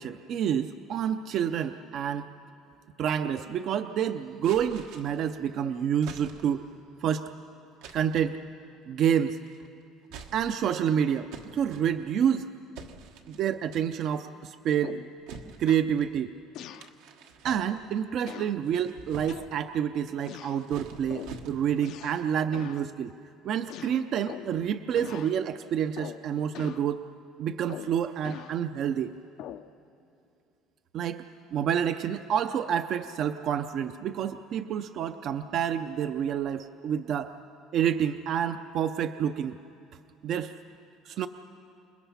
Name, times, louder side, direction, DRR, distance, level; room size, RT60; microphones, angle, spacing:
voice 1, 0.0-2.3 3.0-6.6 7.0-7.3 7.9-8.4 8.9-9.4 10.3-12.5 13.3-15.0 15.6-16.4 17.4-23.1 23.4-27.0 27.4-29.2 30.9-31.2 31.5-37.3 37.7-39.6 40.2-40.5 41.1-41.3, right 9 dB, 55° right, 9 dB, 0.5 m, -28 dB
sound 1, 4.4-5.3 6.0-6.7 7.8-8.3 9.3-9.7 10.0-10.8 11.3-12.3 12.7-13.4 13.7-14.1 15.3-16.1 16.7-18.0 18.5-19.6 20.3-21.9, right 5 dB, 85° right, 1.4 m, -46 dB
sound 2, 14.8-15.2 15.7-15.9 16.5-16.9 17.5-17.7 18.3-18.6 19.3-19.8 20.2-20.6 21.1-21.4 21.8-22.3 22.5-22.9 23.7-24.6 25.0-25.4 26.0-26.3 26.5-26.9 27.7-28.6 29.4-29.7, left 11 dB, 65° left, 0.6 m, -43 dB
27.5 x 20.5 x 5.7 m, 2.7 s
cardioid pair, 120°, 0 cm